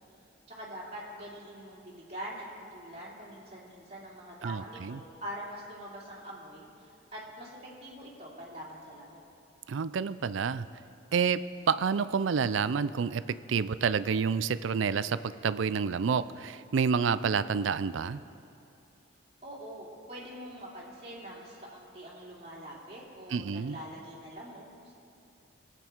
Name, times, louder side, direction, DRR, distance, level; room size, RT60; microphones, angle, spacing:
voice 1, 0.5-2.5 2.7-9.2 19.4-24.9, equal, 35° right, -6 dB, 3.0 m, -44 dB
voice 2, 4.4-5.0 9.7-10.7 11.1-18.2 23.3-23.8, right 6 dB, 75° right, 15 dB, 0.4 m, -29 dB
23.0 x 8.4 x 4.6 m, 2.7 s
head